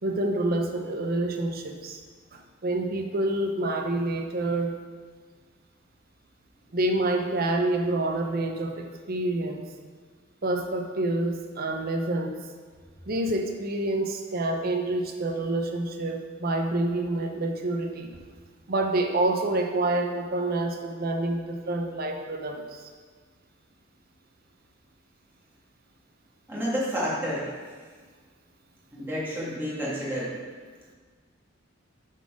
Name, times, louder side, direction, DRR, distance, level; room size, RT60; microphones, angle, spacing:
voice 1, 0.0-2.0 2.3-4.8 6.7-9.7 10.4-12.3 13.1-18.2 18.7-22.8, right 2 dB, 50° right, 3 dB, 0.7 m, -27 dB
voice 2, 26.5-27.6 28.9-30.3, equal, 10° right, -8 dB, 1.9 m, -30 dB
7.4 x 4.2 x 4.9 m, 1.5 s
head